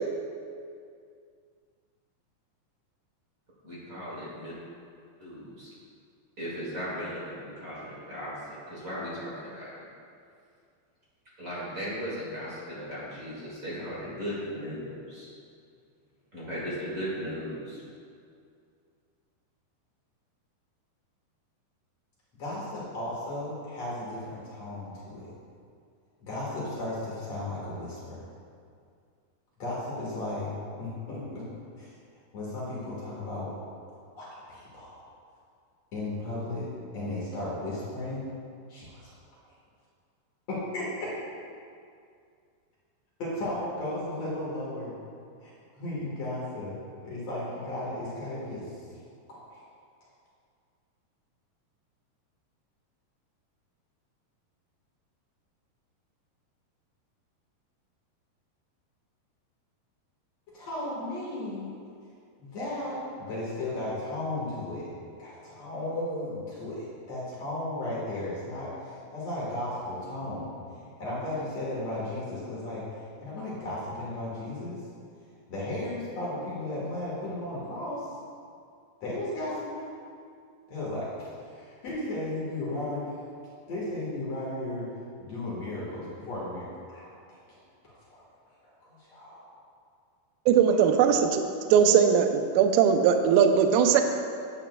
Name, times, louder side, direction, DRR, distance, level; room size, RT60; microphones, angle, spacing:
voice 1, 3.6-4.6 5.2-5.7 6.4-8.3 8.7-9.7 11.4-15.3 16.3-17.8, equal, 45° right, -8 dB, 1.1 m, -37 dB
voice 2, 22.4-25.3 26.2-28.2 29.6-30.5 30.8-31.4 31.8-31.9 32.3-33.5 34.2-35.0 35.9-38.2 38.7-39.1 40.5-41.1 43.2-45.0 45.4-45.5 45.7-46.8 47.0-48.7 49.3-49.6 60.5-61.8 62.4-64.9 65.2-70.6 71.0-72.8 73.2-74.8 75.5-78.1 79.0-79.9 80.7-83.1 83.6-84.9 85.2-87.1 87.8-88.2 88.6-89.5 90.7-90.8, left 1 dB, 55° left, -7 dB, 2.1 m, -35 dB
voice 3, 90.5-91.4 91.7-94.0, right 7 dB, 85° right, 6 dB, 2.1 m, -20 dB
10.0 x 9.2 x 2.3 m, 2.3 s
omnidirectional pair, 4.8 m